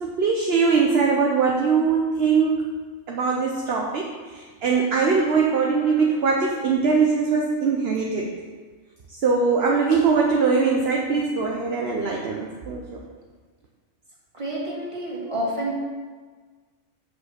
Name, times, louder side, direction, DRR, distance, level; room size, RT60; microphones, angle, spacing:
voice 1, 0.0-2.7 3.1-8.4 9.1-13.0, right 5 dB, 50° right, -1 dB, 1.1 m, -22 dB
voice 2, 14.3-15.8, right 1 dB, 20° right, -5 dB, 2.3 m, -29 dB
6.6 x 5.9 x 7.4 m, 1.5 s
omnidirectional pair, 1.4 m